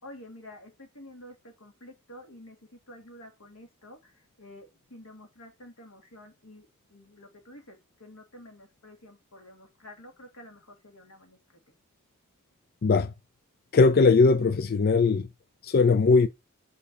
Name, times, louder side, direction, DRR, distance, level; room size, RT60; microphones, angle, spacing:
voice 1, 0.0-11.4, left 1 dB, 85° left, 2.8 m, -49 dB
voice 2, 12.8-13.1 13.7-15.3 15.6-16.3, left 4 dB, 45° left, 0.4 m, -20 dB
6.9 x 5.3 x 7.0 m
head